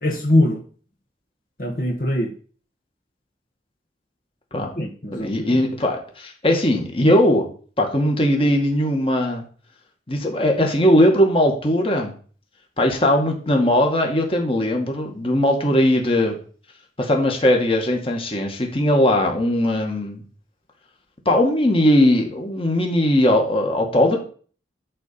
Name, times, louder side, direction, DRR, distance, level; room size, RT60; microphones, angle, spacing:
voice 1, 0.0-0.6 1.6-2.3 4.8-5.6, left 1 dB, 55° left, 0 dB, 1.7 m, -22 dB
voice 2, 5.1-7.5 7.8-9.4 10.1-12.1 12.8-16.4 17.0-20.2 21.3-24.2, left 1 dB, 30° left, 2 dB, 2.2 m, -19 dB
13.0 x 4.4 x 7.1 m, 0.43 s
head